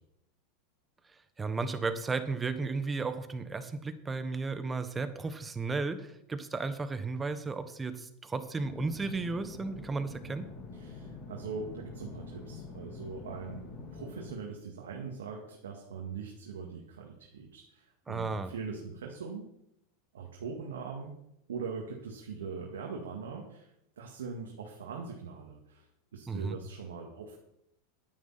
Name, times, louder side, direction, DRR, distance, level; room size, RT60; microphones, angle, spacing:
voice 1, 1.4-10.5 18.1-18.5 26.3-26.6, right 4 dB, 15° right, 11 dB, 1.2 m, -34 dB
sound 1, 8.6-14.3, left 3 dB, 35° left, 2.9 m, -46 dB
voice 2, 10.7-13.6 13.9-19.4 20.1-21.2 21.5-23.7 24.0-25.9 26.1-27.3, right 5 dB, 85° right, 0 dB, 2.0 m, -41 dB
10.0 x 9.4 x 5.8 m, 0.78 s
hypercardioid pair, 110°, 0 cm